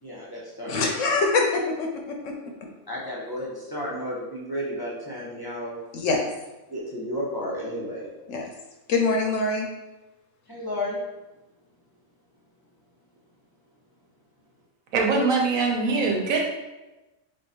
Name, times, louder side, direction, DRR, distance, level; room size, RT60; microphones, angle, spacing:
voice 1, 0.0-0.9 2.9-5.8 6.7-8.1 10.5-11.0, left 1 dB, 20° left, -6 dB, 0.8 m, -32 dB
voice 2, 0.7-2.3 5.9-6.2 8.3-8.5 8.9-9.7, left 3 dB, 65° left, 2 dB, 0.9 m, -24 dB
voice 3, 14.9-16.4, right 4 dB, 70° right, 0 dB, 1.2 m, -22 dB
3.6 x 3.4 x 4.3 m, 1.1 s
omnidirectional pair, 1.5 m